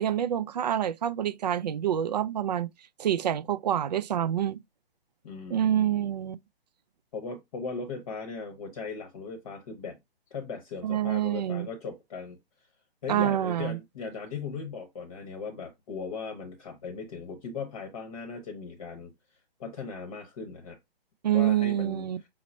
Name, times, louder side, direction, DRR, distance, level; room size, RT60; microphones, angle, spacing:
voice 1, 0.0-2.7 3.0-4.6 5.5-6.4 10.8-11.7 13.1-13.8 21.2-22.2, right 10 dB, 45° right, 0.4 m, -27 dB
voice 2, 5.2-6.0 7.1-10.0 10.3-12.4 13.0-19.1 19.6-20.8 21.3-22.0, left 5 dB, 35° left, 0.9 m, -38 dB
4.7 x 2.0 x 4.2 m
figure-of-eight pair, 135°, 31 cm